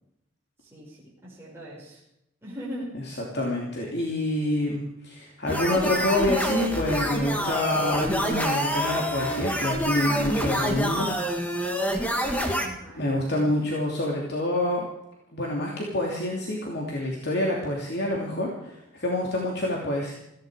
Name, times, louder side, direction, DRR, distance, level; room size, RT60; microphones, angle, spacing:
voice 1, 0.6-2.0 2.4-3.0 12.6-13.7, equal, 10° right, -6 dB, 5.5 m, -40 dB
voice 2, 3.3-11.1 13.0-14.9 15.3-20.1, left 1 dB, 55° left, -2 dB, 2.8 m, -27 dB
sound 1, 5.5-12.7, equal, 5° left, 1.9 m, -27 dB
17.5 x 15.5 x 5.0 m, 0.81 s
head